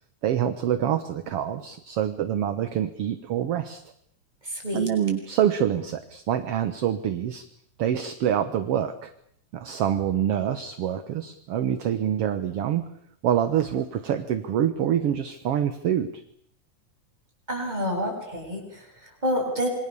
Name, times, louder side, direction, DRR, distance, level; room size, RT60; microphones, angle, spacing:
voice 1, 0.2-3.8 4.7-7.5 7.8-9.1 9.5-12.9 13.2-16.1, right 10 dB, 60° right, 9 dB, 1.9 m, -26 dB
voice 2, 4.4-4.9 17.5-19.7, equal, 10° right, 1 dB, 7.7 m, -28 dB
27.5 x 24.0 x 7.0 m, 0.69 s
omnidirectional pair, 3.5 m